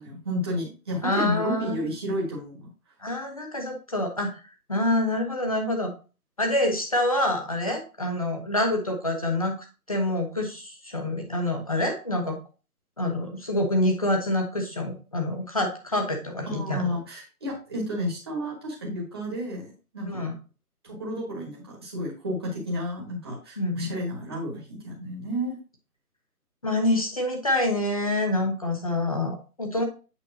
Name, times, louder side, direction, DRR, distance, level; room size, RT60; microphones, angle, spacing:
voice 1, 0.0-2.7 16.4-20.2 20.8-25.6, equal, 15° right, -3 dB, 1.5 m, -31 dB
voice 2, 1.0-1.7 3.0-4.4 4.7-5.9 6.4-9.5 9.9-12.4 13.0-16.9 20.1-20.3 23.6-23.9 26.6-29.8, left 1 dB, 25° left, 3 dB, 1.0 m, -26 dB
8.2 x 5.4 x 2.8 m, 0.34 s
hypercardioid pair, 175°, 45 cm